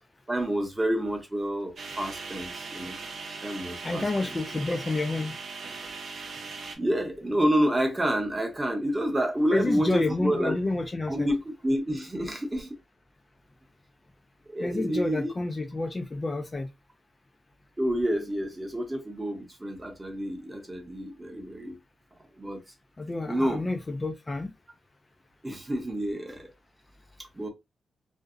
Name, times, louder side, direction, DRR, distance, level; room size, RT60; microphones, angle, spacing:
voice 1, 0.3-3.0 3.4-4.0 6.8-10.6 11.1-12.7 14.5-15.3 17.8-21.8 22.4-22.6 23.3-23.6 25.4-26.5 27.2-27.5, equal, 15° right, 0.7 m, -29 dB
sound 1, 1.8-6.8, right 4 dB, 60° right, 0.6 m, -39 dB
voice 2, 3.8-5.4 9.5-11.3 14.6-16.7 23.0-24.5, left 2 dB, 25° left, 0.3 m, -29 dB
2.5 x 2.0 x 2.4 m
cardioid pair, 100°, 0 cm